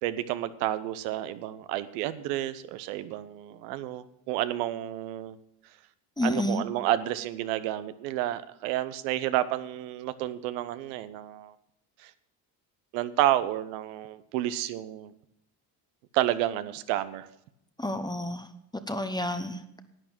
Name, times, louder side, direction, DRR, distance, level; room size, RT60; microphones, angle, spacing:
voice 1, 0.0-5.4 6.2-11.5 12.0-12.1 12.9-15.1 16.1-17.3, right 13 dB, 80° right, 13 dB, 0.9 m, -30 dB
voice 2, 6.2-6.6 17.8-18.5 18.7-19.6, left 1 dB, 10° left, 9 dB, 0.9 m, -30 dB
11.0 x 8.8 x 6.1 m, 0.76 s
supercardioid pair, 75°, 48 cm